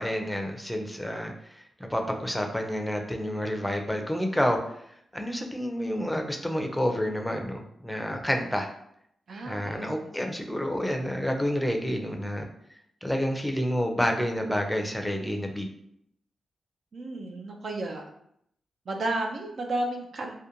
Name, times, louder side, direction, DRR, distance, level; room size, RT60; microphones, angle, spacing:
voice 1, 0.0-4.8 5.1-8.7 9.5-12.4 13.0-15.7, equal, 5° left, 3 dB, 0.5 m, -29 dB
voice 2, 9.3-10.0 16.9-18.0 18.9-20.3, right 2 dB, 65° right, 2 dB, 0.4 m, -32 dB
2.4 x 2.2 x 2.9 m, 0.72 s
supercardioid pair, 50°, 0 cm